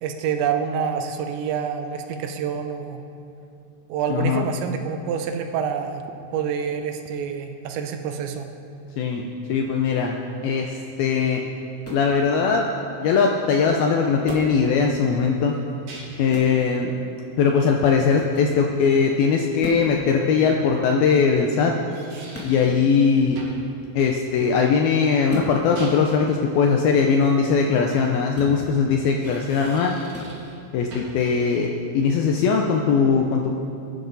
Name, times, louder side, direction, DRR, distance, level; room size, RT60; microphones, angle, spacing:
voice 1, 0.0-3.0 3.9-6.0 6.3-8.5, right 7 dB, 85° right, 5 dB, 3.2 m, -27 dB
voice 2, 4.1-4.5 9.0-11.4 11.9-12.7 13.0-15.6 16.2-16.9 17.4-21.7 22.4-23.4 23.9-30.0 30.7-33.5, left 5 dB, 80° left, 1 dB, 2.2 m, -20 dB
sound 1, 11.8-12.1 14.2-14.6 16.3-16.6 18.3-18.6 19.6-19.9 22.3-22.6 25.3-25.5 28.3-28.6 30.1-30.3, left 1 dB, 5° left, 1.8 m, -35 dB
sound 2, 15.5-16.4 19.6-19.7 21.6-22.8 23.4-23.7 25.5-26.3 29.0-30.6 30.9-31.3, right 2 dB, 55° right, 3.3 m, -43 dB
21.0 x 11.0 x 4.0 m, 2.7 s
omnidirectional pair, 5.1 m